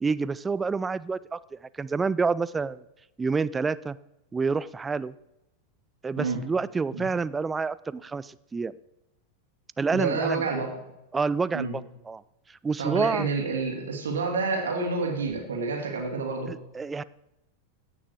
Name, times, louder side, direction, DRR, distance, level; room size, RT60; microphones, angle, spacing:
voice 1, 0.0-2.8 3.2-4.0 4.3-5.1 6.0-8.7 9.8-10.4 11.1-12.2 12.5-13.3 16.5-17.0, right 4 dB, 15° right, 18 dB, 0.3 m, -28 dB
voice 2, 9.9-10.7 11.5-11.8 12.8-16.5, right 4 dB, 65° right, 2 dB, 2.6 m, -28 dB
16.0 x 6.1 x 4.7 m, 0.89 s
figure-of-eight pair, 90°, 0 cm